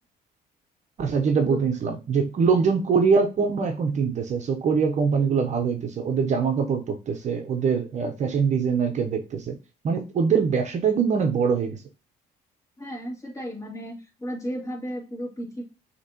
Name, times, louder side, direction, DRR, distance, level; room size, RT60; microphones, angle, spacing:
voice 1, 1.0-9.6 9.8-11.8, right 5 dB, 45° right, 0.8 m, -23 dB
voice 2, 12.8-13.9 14.2-15.6, equal, 20° left, 2.5 m, -34 dB
6.4 x 2.9 x 2.8 m
cardioid pair, 110°, 17 cm